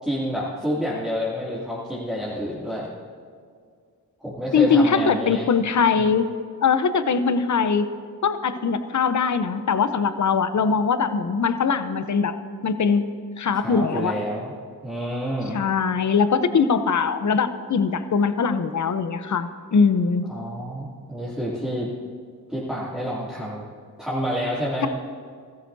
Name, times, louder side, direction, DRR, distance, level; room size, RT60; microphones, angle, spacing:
voice 1, 0.0-2.9 4.2-5.5 6.0-6.1 13.5-14.5 14.8-15.6 20.3-21.9 22.5-23.7 24.0-24.9, equal, ahead, -9 dB, 2.8 m, -28 dB
voice 2, 4.5-6.3 6.6-7.9 8.2-12.4 12.6-13.0 13.4-14.2 15.5-20.2, left 5 dB, 50° left, 11 dB, 0.8 m, -21 dB
15.5 x 14.0 x 2.8 m, 2.1 s
cardioid pair, 55°, 37 cm